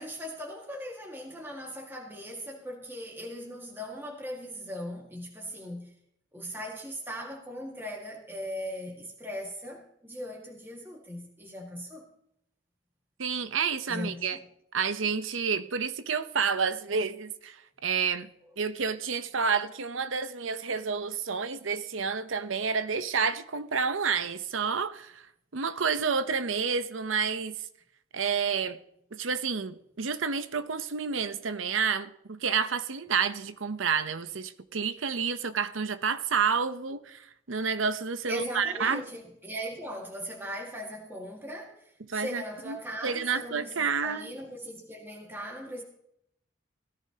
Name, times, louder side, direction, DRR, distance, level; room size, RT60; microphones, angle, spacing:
voice 1, 0.0-5.9 6.3-12.1 13.9-14.4 38.3-45.8, equal, 10° right, 1.8 m, -39 dB
voice 2, 13.2-14.4 14.7-17.6 17.8-18.3 18.6-25.2 25.5-27.6 28.1-28.8 29.1-37.2 37.5-39.0 42.1-44.3, right 5 dB, 75° right, 0.8 m, -29 dB
17.0 x 14.0 x 2.9 m
head